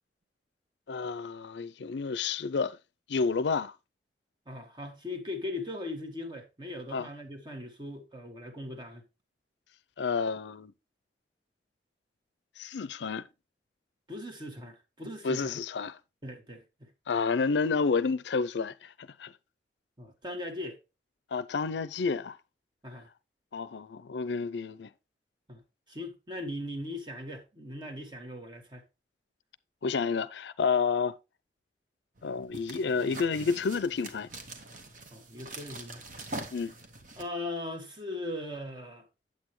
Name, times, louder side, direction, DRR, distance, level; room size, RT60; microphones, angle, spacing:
voice 1, 0.9-2.8 3.1-3.7 6.9-7.1 10.0-10.7 12.6-13.3 15.2-15.9 17.1-19.3 21.3-22.4 23.5-24.9 29.8-31.2 32.2-34.3 36.5-36.7, left 5 dB, 80° left, 0.5 m, -30 dB
voice 2, 4.5-9.0 14.1-15.5 16.2-16.9 20.0-20.8 22.8-23.1 25.5-25.6 25.9-28.8 35.1-36.0 37.2-39.0, left 1 dB, 25° right, 1.6 m, -39 dB
sound 1, 32.2-37.2, right 2 dB, 45° right, 1.3 m, -44 dB
8.3 x 8.2 x 3.1 m
head